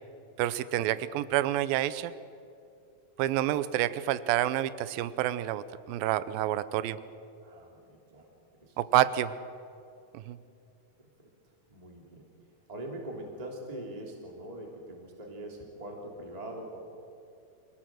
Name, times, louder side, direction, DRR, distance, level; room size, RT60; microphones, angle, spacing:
voice 1, 0.4-2.1 3.2-7.0 8.8-9.3 10.3-10.4, right 13 dB, 85° right, 15 dB, 2.5 m, -28 dB
voice 2, 7.4-8.3 8.6-8.8 11.7-12.3 12.7-16.8, right 1 dB, 10° right, 0 dB, 2.9 m, -42 dB
26.5 x 17.5 x 7.8 m, 2.6 s
omnidirectional pair, 4.1 m